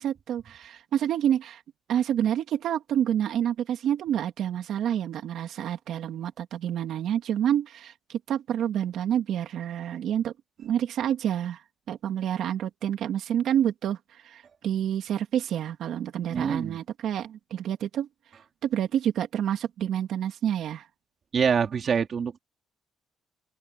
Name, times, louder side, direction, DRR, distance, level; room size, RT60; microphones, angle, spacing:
voice 1, 0.0-1.6 1.9-10.3 10.6-11.6 11.9-18.1 18.6-20.9, right 10 dB, 65° right, 2.6 m, -28 dB
voice 2, 16.3-16.8 21.3-22.4, right 6 dB, 40° right, 2.6 m, -25 dB
open air
cardioid pair, 135°, 0 cm